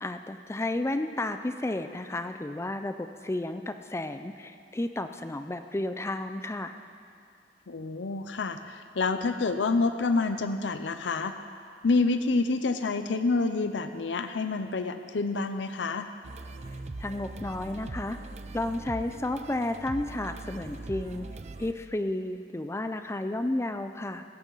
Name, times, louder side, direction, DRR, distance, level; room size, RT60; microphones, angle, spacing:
voice 1, 0.0-6.7 17.0-18.2 18.5-21.3 21.6-24.2, left 1 dB, 15° left, 8 dB, 0.4 m, -32 dB
voice 2, 7.7-11.3 11.8-16.1, left 3 dB, 90° left, 9 dB, 0.6 m, -28 dB
sound 1, 16.2-21.7, right 2 dB, 40° right, 0.5 m, -41 dB
16.5 x 14.5 x 4.0 m, 2.3 s
head